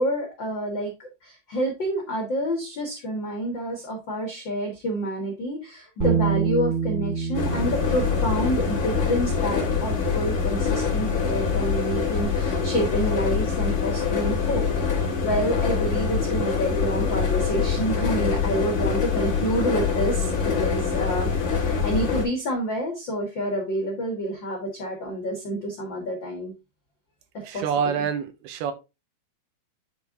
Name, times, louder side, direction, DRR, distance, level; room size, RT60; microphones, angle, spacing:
voice 1, 0.0-14.9 15.2-26.5 27.3-27.6, equal, 80° left, 1.0 m, -28 dB
Bass guitar, 6.0-12.2, right 6 dB, 20° right, 1.4 m, -30 dB
sound 1, 7.3-22.3, left 5 dB, 40° left, 2.4 m, -24 dB
voice 2, 27.4-28.7, right 7 dB, 80° right, 2.9 m, -26 dB
9.4 x 3.7 x 3.6 m
omnidirectional pair, 4.6 m